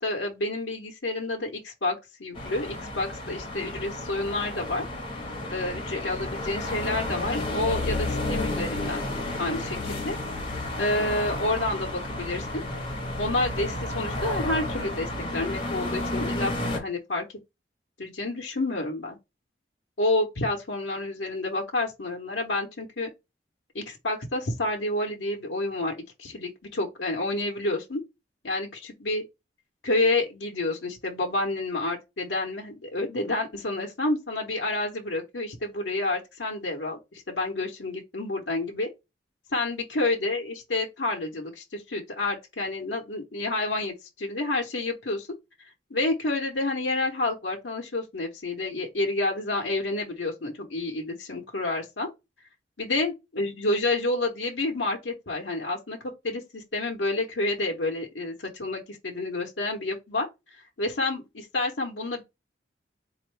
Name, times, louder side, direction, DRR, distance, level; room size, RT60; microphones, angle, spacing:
voice 1, 0.0-4.8 5.5-9.0 9.4-10.2 10.8-12.6 13.2-17.2 18.0-19.2 20.0-23.1 23.7-28.0 28.4-29.2 29.8-38.9 39.5-45.3 45.9-52.1 52.8-56.0 56.2-60.3 60.5-62.2, left 2 dB, 85° left, 0.9 m, -29 dB
sound 1, 2.3-16.8, left 1 dB, 30° left, 1.4 m, -32 dB
4.2 x 2.6 x 3.2 m
head